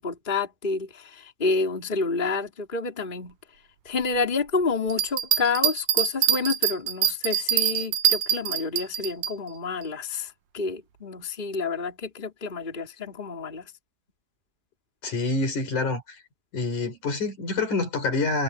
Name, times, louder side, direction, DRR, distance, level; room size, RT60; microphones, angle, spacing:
voice 1, 0.0-3.4 3.8-13.7, left 4 dB, 15° left, 3.1 m, -29 dB
sound 1, 4.9-9.3, right 11 dB, 75° right, 2.7 m, -24 dB
voice 2, 15.0-16.0 16.5-18.4, left 3 dB, 55° left, 6.1 m, -26 dB
omnidirectional pair, 4.1 m